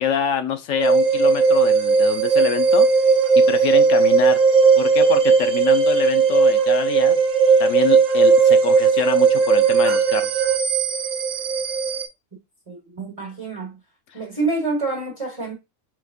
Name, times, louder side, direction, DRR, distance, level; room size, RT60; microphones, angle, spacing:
voice 1, 0.0-2.9 3.5-4.4 4.8-7.2 7.6-10.3, left 8 dB, 70° left, 0.9 m, -26 dB
sound 1, 0.7-10.6, right 14 dB, 70° right, 1.0 m, -22 dB
sound 2, 0.8-12.1, right 3 dB, 85° right, 0.4 m, -18 dB
voice 2, 12.7-13.8 14.1-15.5, right 3 dB, 25° right, 1.2 m, -27 dB
4.3 x 4.0 x 2.4 m
omnidirectional pair, 1.5 m